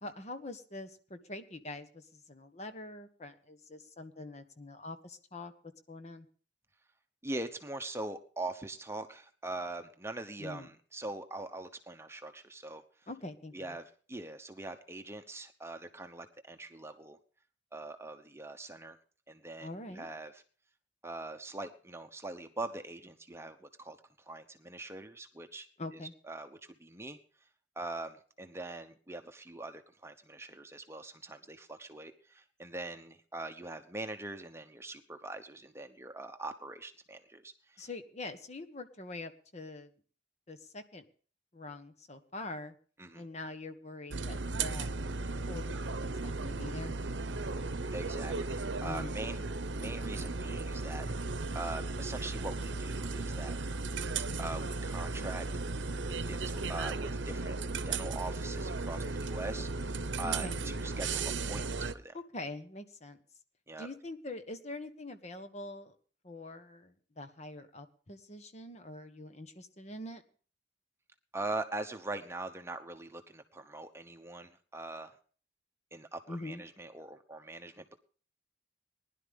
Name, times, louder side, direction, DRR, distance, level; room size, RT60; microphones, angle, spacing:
voice 1, 0.0-5.5 5.9-6.3 10.4-10.7 13.1-13.8 19.6-20.1 25.8-26.1 37.8-40.0 40.5-41.1 41.5-42.8 43.1-44.9 45.4-47.0 48.8-49.2 60.2-60.6 62.1-63.2 63.8-65.9 66.2-70.2 76.3-76.6, left 2 dB, 40° left, 8 dB, 1.4 m, -44 dB
voice 2, 7.2-12.8 13.5-17.2 17.7-19.0 19.3-20.4 21.0-24.0 24.3-25.7 25.9-27.2 27.8-37.9 43.0-43.2 47.9-49.5 49.8-53.6 54.2-57.5 57.9-62.2 63.7-63.9 71.3-75.2 75.9-78.0, right 2 dB, 15° right, 7 dB, 1.0 m, -42 dB
sound 1, 44.1-61.9, right 3 dB, 85° right, 0.9 m, -36 dB
20.0 x 11.5 x 3.6 m, 0.42 s
head